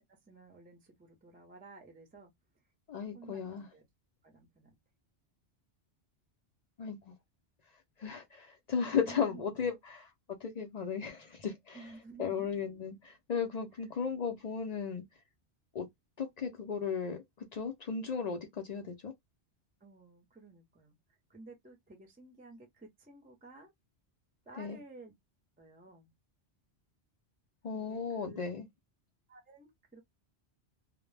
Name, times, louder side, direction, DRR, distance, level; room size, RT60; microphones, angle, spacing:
voice 1, 0.1-2.3 3.1-3.8 4.2-4.7 8.9-9.4 11.7-12.5 19.8-21.0 21.3-23.7 24.5-25.1 25.6-26.1 27.7-28.4 29.3-30.0, right 3 dB, 10° right, 0.4 m, -53 dB
voice 2, 2.9-3.7 6.8-7.2 8.0-11.9 12.2-15.0 15.7-15.9 16.2-19.1 24.5-24.8 27.6-28.7, left 6 dB, 60° left, 0.4 m, -36 dB
2.1 x 2.0 x 3.1 m
omnidirectional pair, 1.2 m